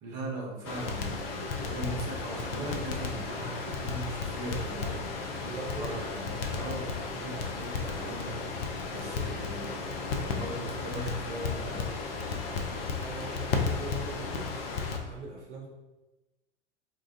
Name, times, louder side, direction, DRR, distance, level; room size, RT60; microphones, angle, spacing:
voice 1, 0.0-12.0, right 2 dB, 35° right, -2 dB, 0.9 m, -39 dB
Crackle, 0.6-15.0, left 4 dB, 55° left, 0.5 m, -34 dB
voice 2, 5.4-6.1 13.0-15.7, right 2 dB, 70° right, -2 dB, 0.7 m, -42 dB
3.9 x 2.3 x 2.4 m, 1.1 s
figure-of-eight pair, 85°, 35 cm